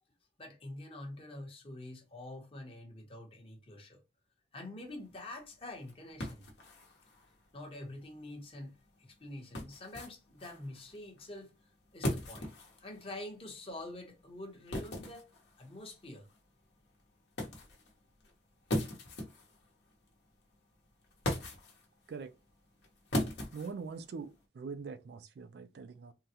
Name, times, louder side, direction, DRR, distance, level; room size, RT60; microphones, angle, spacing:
voice 1, 0.4-4.0 4.5-6.5 7.5-11.5 11.9-12.5 12.8-15.3 15.6-16.3, left 1 dB, 30° left, 0.9 m, -46 dB
sound 1, 4.8-24.4, left 1 dB, 70° left, 1.0 m, -42 dB
voice 2, 23.5-26.1, right 5 dB, 60° right, 0.3 m, -43 dB
3.7 x 2.1 x 2.8 m
head